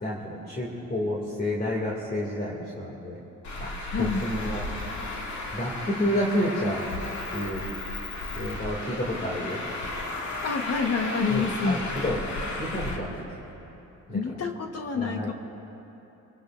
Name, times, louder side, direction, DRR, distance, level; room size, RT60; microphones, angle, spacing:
voice 1, 0.0-3.2 3.6-3.7 4.0-4.6 5.5-6.8 7.3-7.7 8.3-9.6 11.3-13.2 14.1-14.2 14.9-15.3, left 1 dB, 30° left, -4 dB, 2.4 m, -30 dB
Traffic noise roadway noise, 3.4-13.0, left 2 dB, 70° left, 2.1 m, -34 dB
voice 2, 3.9-4.2 10.4-11.8 14.1-15.3, left 5 dB, 55° left, 4 dB, 1.3 m, -27 dB
25.5 x 18.5 x 2.5 m, 3.0 s
cardioid pair, 90°, 30 cm